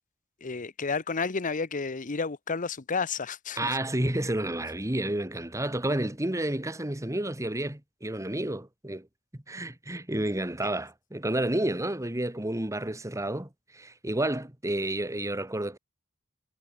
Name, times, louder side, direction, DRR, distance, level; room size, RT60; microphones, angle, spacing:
voice 1, 0.4-3.8, left 4 dB, 40° left, 0.9 m, -31 dB
voice 2, 3.6-9.1 9.5-15.8, right 1 dB, 15° right, 1.6 m, -30 dB
head